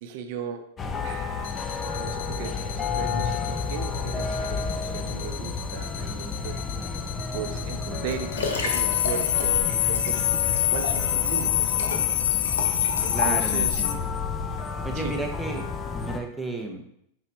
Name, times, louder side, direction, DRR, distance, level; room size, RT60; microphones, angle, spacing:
voice 1, 0.0-0.7 1.0-6.6 7.3-10.3 10.7-12.0 13.0-13.8 14.9-15.1, right 7 dB, 55° right, 6 dB, 0.7 m, -37 dB
sound 1, 0.8-16.2, left 4 dB, 20° left, 0.5 m, -31 dB
sound 2, 1.4-13.9, left 13 dB, 75° left, 0.6 m, -27 dB
voice 2, 6.8-7.1 13.1-14.0 14.8-15.6 15.9-16.8, right 2 dB, ahead, 1 dB, 0.9 m, -33 dB
Liquid, 7.7-13.9 14.6-14.7, left 3 dB, 90° left, 1.0 m, -34 dB
5.7 x 5.3 x 3.4 m, 0.72 s
hypercardioid pair, 135°, 0 cm